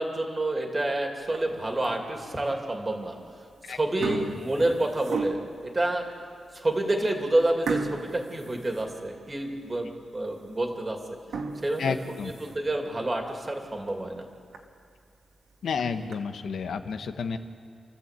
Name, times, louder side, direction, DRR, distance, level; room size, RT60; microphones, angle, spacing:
voice 1, 0.0-3.2 3.7-6.1 6.5-11.0 11.6-14.3, right 1 dB, 20° right, 2 dB, 2.5 m, -28 dB
sound 1, 1.2-1.7 2.3-2.4 3.3-3.5 3.8-5.7 6.3-6.4 6.7-6.9 7.7-9.4 9.8-9.9 10.4-10.5 11.1-12.7 13.2-13.3 13.7-13.8 14.1-14.2 14.5-14.6 15.5-16.1, right 4 dB, 80° right, 1.9 m, -35 dB
voice 2, 3.7-4.4 11.8-12.3 15.6-17.4, left 5 dB, 65° left, 8 dB, 1.2 m, -31 dB
29.5 x 13.5 x 8.3 m, 2.4 s
wide cardioid pair, 170°, 0 cm